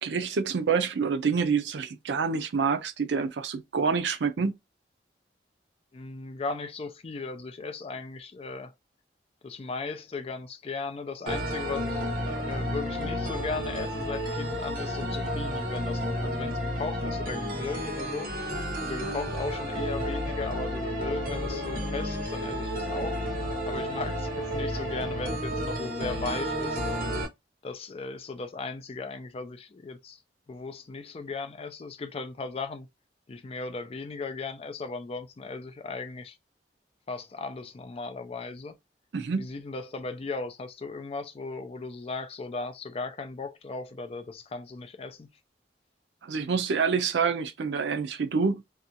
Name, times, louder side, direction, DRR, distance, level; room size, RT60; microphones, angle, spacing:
voice 1, 0.0-4.5 39.1-39.5 46.2-48.6, right 5 dB, 80° right, 0.5 m, -27 dB
voice 2, 5.9-8.7 9.4-18.3 18.8-23.2 23.7-26.8 27.6-30.2 30.5-32.9 33.3-36.4 37.1-38.8 39.4-45.3, left 3 dB, 35° left, 0.4 m, -37 dB
sound 1, 11.3-27.3, equal, 55° right, 0.8 m, -31 dB
2.7 x 2.3 x 2.6 m
head